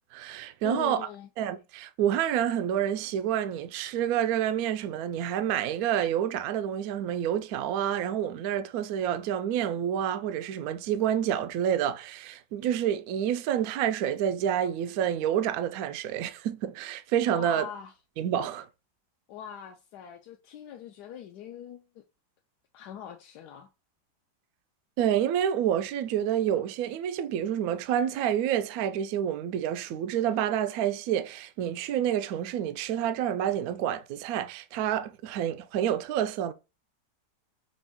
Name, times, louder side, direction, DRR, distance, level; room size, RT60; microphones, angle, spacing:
voice 1, 0.1-1.1 1.4-17.7 18.2-18.7 25.0-36.5, right 10 dB, 75° right, 0.8 m, -28 dB
voice 2, 0.6-1.3 17.3-17.9 19.3-22.0 22.7-23.7, left 9 dB, 70° left, 1.1 m, -42 dB
5.2 x 2.5 x 3.5 m
omnidirectional pair, 2.0 m